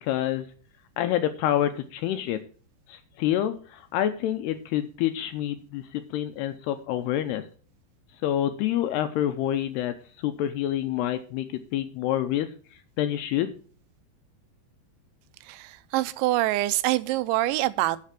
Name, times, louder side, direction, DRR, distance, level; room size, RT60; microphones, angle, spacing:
voice 1, 0.0-0.5 1.0-2.4 2.9-7.4 8.2-12.5 13.0-13.6, left 11 dB, 80° left, 2.4 m, -27 dB
voice 2, 15.5-18.0, right 17 dB, 90° right, 3.0 m, -25 dB
8.4 x 7.5 x 5.8 m
omnidirectional pair, 5.2 m